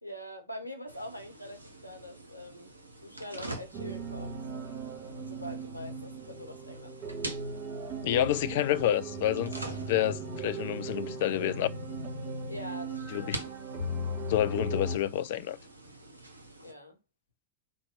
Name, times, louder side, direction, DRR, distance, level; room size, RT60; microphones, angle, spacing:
voice 1, 0.0-2.7 3.0-4.4 5.0-7.2 12.5-13.3 16.6-17.0, left 1 dB, 90° left, 0.9 m, -44 dB
sound 1, 0.9-16.7, right 1 dB, 80° right, 0.7 m, -45 dB
sound 2, 3.7-15.0, right 2 dB, 45° right, 1.7 m, -38 dB
voice 2, 8.0-11.7 13.1-13.4 14.3-15.6, left 12 dB, 55° left, 0.4 m, -29 dB
3.5 x 2.2 x 3.5 m
figure-of-eight pair, 90°, 0 cm